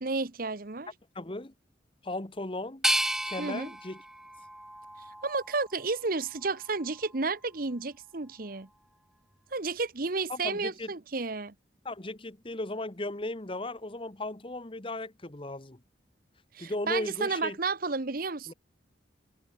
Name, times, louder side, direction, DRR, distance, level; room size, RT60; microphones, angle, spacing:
voice 1, 0.0-0.9 3.4-3.7 5.2-8.7 9.5-11.5 16.5-18.5, right 3 dB, 50° right, 1.1 m, -32 dB
voice 2, 1.1-1.5 2.0-2.8 3.2-4.0 10.3-10.9 11.8-15.8 16.6-17.6 18.5-18.6, left 2 dB, 30° left, 1.3 m, -36 dB
sound 1, 2.8-5.8 6.3-7.1, right 1 dB, 5° right, 0.4 m, -33 dB
head